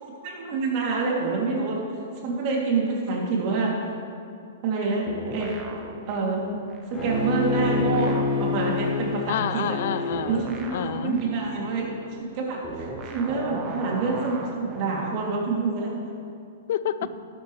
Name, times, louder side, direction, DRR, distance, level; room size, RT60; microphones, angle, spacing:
voice 1, 0.0-1.8 2.2-3.7 4.6-5.5 6.1-6.6 6.9-9.6 10.3-11.9 12.3-16.0, right 3 dB, 45° right, -2 dB, 2.9 m, -27 dB
sound 1, 5.1-7.3 7.6-15.2, right 3 dB, 30° right, 1.2 m, -38 dB
Bowed string instrument, 6.9-12.0, left 2 dB, 10° left, 2.7 m, -29 dB
voice 2, 9.3-10.5 10.7-11.2 16.7-17.1, left 10 dB, 60° left, 15 dB, 0.4 m, -28 dB
12.5 x 11.0 x 3.3 m, 2.4 s
hypercardioid pair, 115°, 0 cm